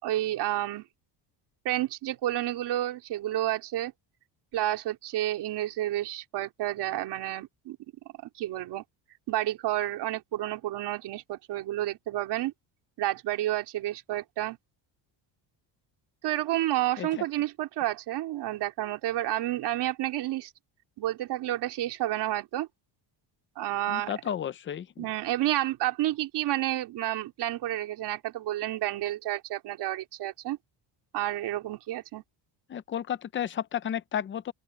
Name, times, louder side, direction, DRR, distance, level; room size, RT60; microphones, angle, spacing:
voice 1, 0.0-0.8 1.6-3.9 4.5-7.8 8.4-8.8 9.3-12.5 13.0-14.6 16.2-20.5 21.0-22.7 23.5-24.1 25.0-30.6 31.1-32.2, right 14 dB, 60° right, 3.5 m, -30 dB
voice 2, 23.9-25.1 32.7-34.5, left 9 dB, 25° left, 0.6 m, -33 dB
open air
cardioid pair, 175°, 45 cm